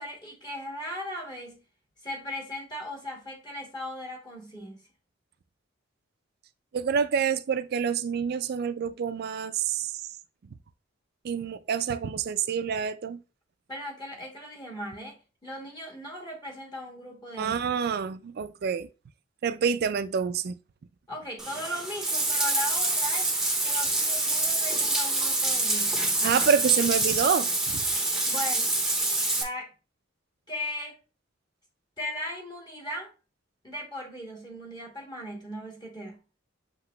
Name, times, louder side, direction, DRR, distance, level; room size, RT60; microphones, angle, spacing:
voice 1, 0.0-1.6 2.0-4.8 13.7-17.6 21.1-23.3 23.6-26.1 28.3-28.7 29.4-29.7 30.5-31.0 32.0-33.1 33.6-36.2, left 1 dB, 20° left, 1.0 m, -38 dB
voice 2, 6.7-9.9 11.2-13.2 17.4-18.9 19.4-20.6 26.2-27.8, right 7 dB, 50° right, 0.3 m, -27 dB
Bathtub (filling or washing), 21.4-29.4, right 2 dB, 5° right, 0.6 m, -26 dB
7.4 x 2.9 x 2.2 m
head